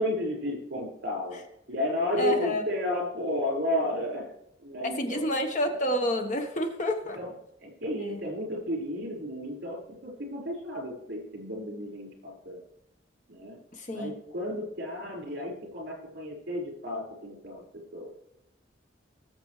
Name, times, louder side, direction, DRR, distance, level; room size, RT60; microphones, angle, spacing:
voice 1, 0.0-4.3 4.6-5.3 7.1-7.3 7.6-12.6 13.3-13.6 13.9-17.6 17.9-18.1, left 1 dB, 60° right, -2 dB, 5.3 m, -32 dB
voice 2, 2.2-2.6 4.8-7.2 8.0-8.2 13.7-14.2, equal, 40° left, 5 dB, 1.3 m, -29 dB
19.5 x 7.3 x 3.3 m, 0.80 s
head